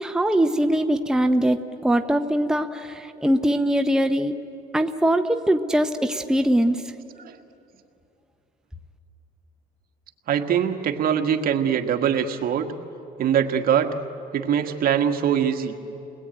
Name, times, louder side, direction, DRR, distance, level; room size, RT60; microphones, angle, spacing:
voice 1, 0.0-4.4 4.7-6.8, right 1 dB, 5° right, 6 dB, 0.8 m, -22 dB
voice 2, 10.3-12.7 13.2-13.9 14.3-15.7, right 8 dB, 60° right, 5 dB, 1.7 m, -22 dB
29.5 x 20.5 x 9.1 m, 2.8 s
cardioid pair, 110°, 17 cm